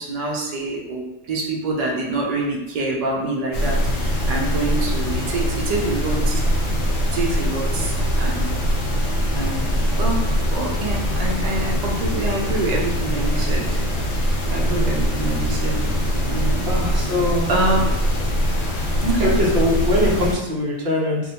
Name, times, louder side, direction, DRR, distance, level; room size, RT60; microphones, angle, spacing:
voice 1, 0.0-6.4 7.1-8.6 9.4-13.8 14.5-15.8 16.3-16.7 17.5-17.9 19.0-19.3, right 2 dB, 85° right, -1 dB, 0.3 m, -26 dB
sound 1, 3.5-20.3, equal, 85° left, 1.0 m, -22 dB
voice 2, 16.7-17.5 19.2-21.2, left 1 dB, 55° right, -4 dB, 0.9 m, -22 dB
2.5 x 2.1 x 2.7 m, 0.96 s
omnidirectional pair, 1.2 m